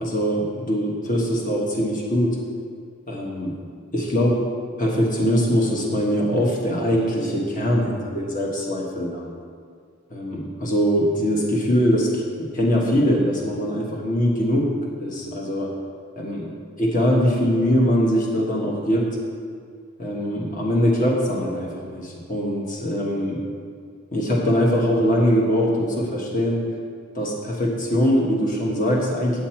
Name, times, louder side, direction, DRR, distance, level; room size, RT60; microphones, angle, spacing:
voice 1, 0.0-2.4 3.1-3.5 3.9-4.5 4.8-9.3 10.1-12.1 12.4-14.7 15.0-15.7 16.2-16.5 16.8-19.2 20.0-23.4 24.1-26.7 27.1-29.4, equal, 40° left, -2 dB, 1.3 m, -22 dB
9.5 x 8.6 x 4.4 m, 2.2 s
head